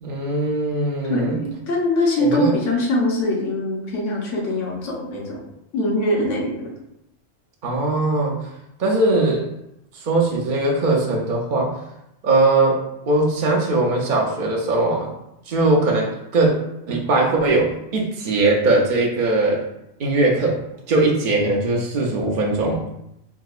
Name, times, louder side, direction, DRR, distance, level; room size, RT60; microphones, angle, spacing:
voice 1, 0.0-1.4 2.2-2.5 7.6-8.4 8.8-9.5 10.0-11.7 12.2-15.1 15.5-16.5 16.9-19.6 20.0-20.6 20.9-22.8, right 2 dB, 55° right, -2 dB, 0.5 m, -20 dB
voice 2, 1.1-5.4 5.7-6.7, left 1 dB, 70° left, -2 dB, 1.1 m, -22 dB
3.7 x 2.7 x 2.4 m, 0.83 s
omnidirectional pair, 1.3 m